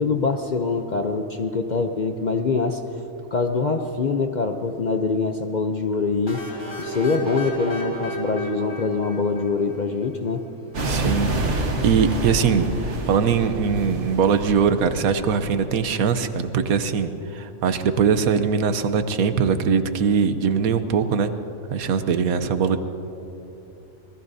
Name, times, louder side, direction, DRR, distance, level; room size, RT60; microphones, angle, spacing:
voice 1, 0.0-2.8 3.3-6.4 6.8-10.4, left 4 dB, 50° left, 6 dB, 0.5 m, -24 dB
sound 1, 6.3-10.0, right 1 dB, 90° left, 4.0 m, -34 dB
sound 2, 10.7-16.0, right 2 dB, 55° right, 1.7 m, -28 dB
voice 2, 10.8-21.3 21.7-22.8, right 6 dB, 90° right, 9 dB, 1.3 m, -21 dB
26.5 x 20.0 x 2.7 m, 3.0 s
omnidirectional pair, 1.4 m